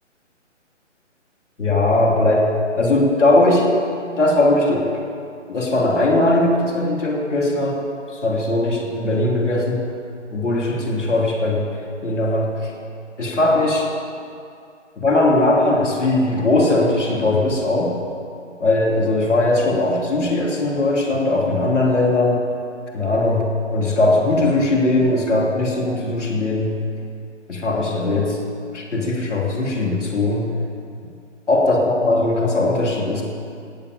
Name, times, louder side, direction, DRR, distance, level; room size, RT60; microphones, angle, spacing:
voice 1, 1.6-3.7 4.2-4.9 5.5-7.8 8.1-9.9 10.3-11.7 12.0-12.7 13.2-13.9 15.0-18.0 18.6-22.4 22.9-26.7 27.5-28.4 28.7-30.5 31.5-33.2, left 2 dB, ahead, -17 dB, 1.1 m, -19 dB
18.0 x 8.8 x 6.9 m, 2.4 s
hypercardioid pair, 175°, 37 cm